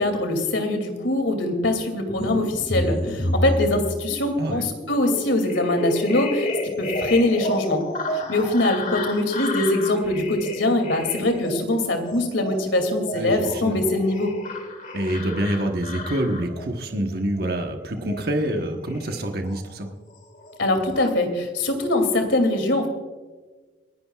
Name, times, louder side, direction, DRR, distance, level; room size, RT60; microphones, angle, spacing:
voice 1, 0.0-7.8 8.3-14.4 20.6-22.9, left 2 dB, 85° left, 6 dB, 2.6 m, -23 dB
sound 1, 2.2-19.9 20.2-21.1, left 1 dB, 45° left, 2.0 m, -31 dB
voice 2, 13.1-13.8 14.9-19.9, right 1 dB, 55° right, 3 dB, 1.2 m, -26 dB
28.5 x 11.5 x 2.4 m, 1.3 s
head